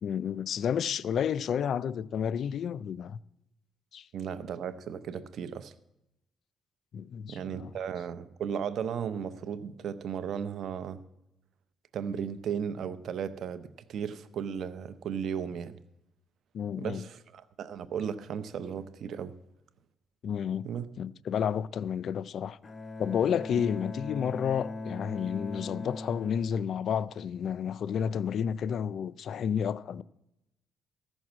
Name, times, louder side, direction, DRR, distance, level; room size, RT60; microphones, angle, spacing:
voice 1, 0.0-3.2 3.9-4.1 6.9-7.7 16.5-17.0 20.2-20.7 21.0-22.6 23.0-30.0, left 8 dB, 65° left, 0.3 m, -31 dB
voice 2, 4.1-5.7 7.3-11.0 11.9-15.8 16.8-19.3 20.6-20.9, right 7 dB, 65° right, 0.7 m, -35 dB
Bowed string instrument, 22.6-27.6, left 2 dB, 35° left, 0.7 m, -40 dB
14.5 x 6.3 x 7.3 m
cardioid pair, 90°, 0 cm